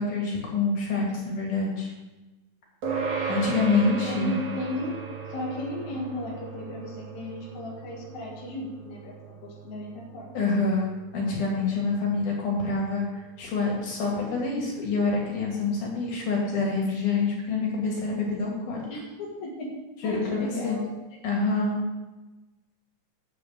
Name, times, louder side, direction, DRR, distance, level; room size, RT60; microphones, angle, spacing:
voice 1, 0.0-1.9 3.3-4.4 10.3-10.9 11.1-18.8 20.0-20.8 21.2-21.8, left 3 dB, 90° left, -2 dB, 4.2 m, -26 dB
sound 1, 2.8-12.5, right 5 dB, 70° right, 3.1 m, -36 dB
voice 2, 4.1-4.9 5.3-10.3 18.9-19.7 20.0-20.9, left 1 dB, 70° left, -4 dB, 3.3 m, -35 dB
8.6 x 6.9 x 7.8 m, 1.1 s
omnidirectional pair, 3.4 m